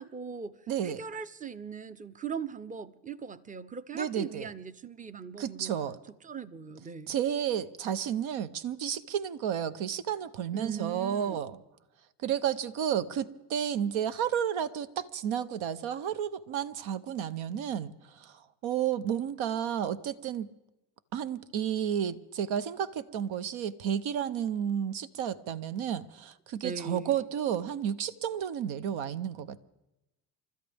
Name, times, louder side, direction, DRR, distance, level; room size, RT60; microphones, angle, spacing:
voice 1, 0.0-0.6 0.8-5.8 6.2-7.2 10.5-11.4 26.6-27.1, right 6 dB, 15° right, 0.7 m, -40 dB
voice 2, 0.7-1.0 3.9-4.5 5.4-6.0 7.1-11.6 12.2-20.5 21.1-29.6, right 9 dB, 70° right, 1.0 m, -32 dB
29.5 x 13.0 x 3.5 m
supercardioid pair, 80°, 49 cm